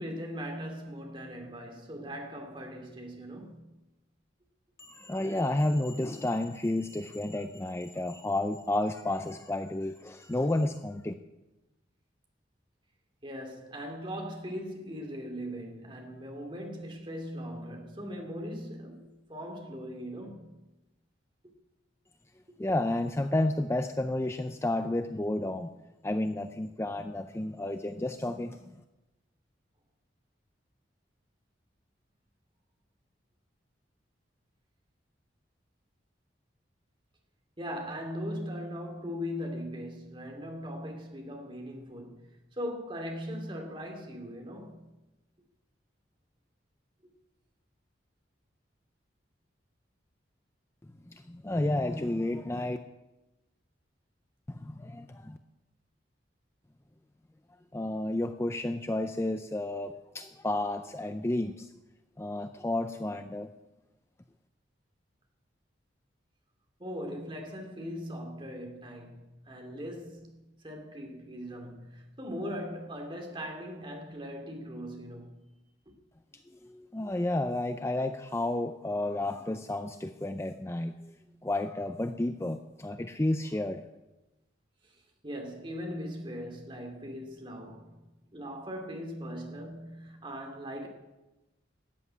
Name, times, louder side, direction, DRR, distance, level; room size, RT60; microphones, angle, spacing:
voice 1, 0.0-3.6 13.2-20.5 37.6-44.9 66.8-75.4 84.8-84.9 85.2-88.0 88.3-90.9, equal, 25° right, 2.5 m, -39 dB
voice 2, 4.8-11.1 22.6-25.7 26.0-28.7 51.1-52.8 54.5-55.4 57.7-61.7 62.2-63.5 76.6-81.1 81.4-83.8, left 1 dB, 15° left, 0.4 m, -31 dB
14.0 x 7.7 x 9.5 m
head